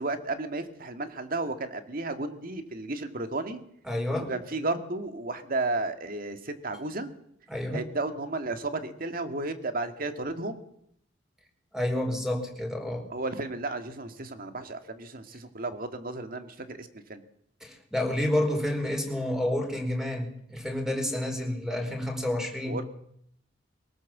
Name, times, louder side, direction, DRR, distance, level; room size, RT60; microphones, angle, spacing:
voice 1, 0.0-3.6 4.3-7.1 7.7-10.5 13.1-17.2 22.7-22.8, right 2 dB, 50° right, 8 dB, 2.1 m, -33 dB
voice 2, 3.9-4.3 7.5-7.8 11.7-13.1 17.6-22.8, left 1 dB, 5° right, 4 dB, 4.4 m, -29 dB
22.5 x 18.5 x 7.4 m, 0.71 s
head